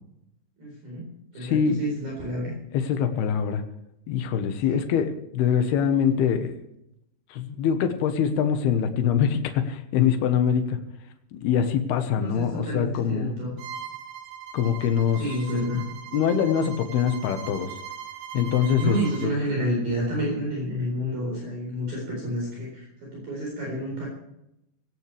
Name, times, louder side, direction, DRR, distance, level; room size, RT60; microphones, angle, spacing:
voice 1, 0.6-1.0 1.3-2.5 4.7-4.8 12.2-13.6 15.2-15.8 18.8-22.8 23.1-24.1, equal, 45° right, -3 dB, 5.9 m, -29 dB
voice 2, 1.4-1.8 2.7-3.6 4.1-6.5 7.3-10.8 11.3-13.3 14.5-15.2 16.1-17.7 18.3-19.0 19.2-19.3, left 8 dB, 70° left, 7 dB, 2.6 m, -24 dB
Bowed string instrument, 13.6-19.4, right 8 dB, 75° right, 4.0 m, -40 dB
18.0 x 17.5 x 3.4 m, 0.82 s
omnidirectional pair, 5.8 m